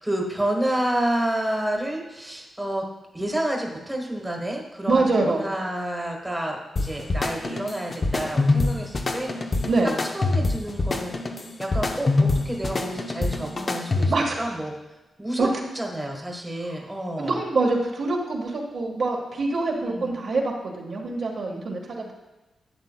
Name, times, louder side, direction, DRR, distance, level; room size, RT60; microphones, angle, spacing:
voice 1, 0.0-2.9 3.1-14.7 15.2-15.5 15.7-17.4 19.8-20.1, right 1 dB, 10° right, 0 dB, 1.3 m, -29 dB
voice 2, 4.9-5.4 9.7-9.9 14.1-14.5 15.4-15.5 17.2-22.1, right 3 dB, 65° right, 0 dB, 1.4 m, -25 dB
sound 1, 6.8-14.4, left 2 dB, 35° left, 0.7 m, -25 dB
11.0 x 8.1 x 2.2 m, 1.0 s
cardioid pair, 100°, 0 cm